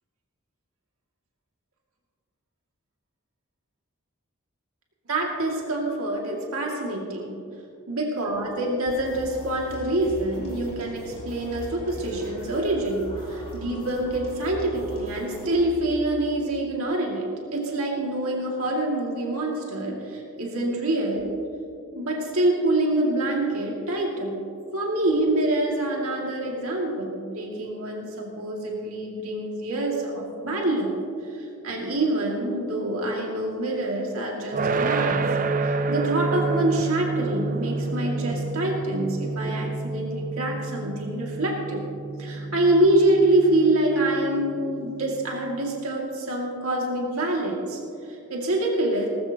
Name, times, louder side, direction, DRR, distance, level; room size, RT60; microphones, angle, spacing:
voice 1, 5.1-7.4 7.9-21.3 22.0-24.4 24.7-30.9 31.3-35.2 35.6-41.8 42.2-49.1, right 1 dB, 80° right, -1 dB, 2.2 m, -26 dB
sound 1, 8.9-15.7, left 1 dB, 30° left, 3.7 m, -40 dB
sound 2, 34.5-45.5, right 3 dB, 35° right, 0.5 m, -29 dB
19.0 x 14.5 x 2.9 m, 2.6 s
head